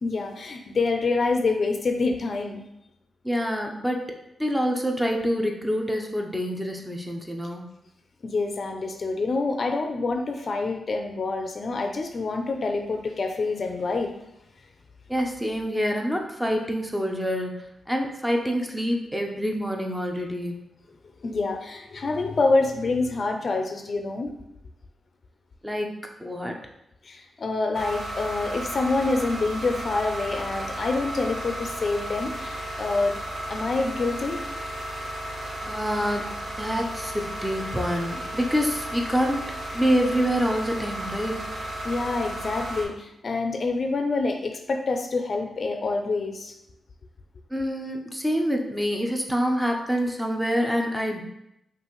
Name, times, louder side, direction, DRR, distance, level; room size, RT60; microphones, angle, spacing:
voice 1, 0.0-2.6 8.2-14.1 21.2-24.3 27.0-33.2 33.5-34.4 41.8-46.5, left 3 dB, 50° left, 4 dB, 0.5 m, -26 dB
voice 2, 3.2-4.1 4.4-7.6 15.1-20.7 25.6-25.9 26.2-26.6 35.6-36.3 36.6-39.4 39.7-41.5 47.5-51.2, equal, 5° right, 1 dB, 0.5 m, -26 dB
sound 1, 27.7-42.8, right 1 dB, 60° right, 0.9 m, -34 dB
5.5 x 2.5 x 3.1 m, 0.83 s
cardioid pair, 105°, 0 cm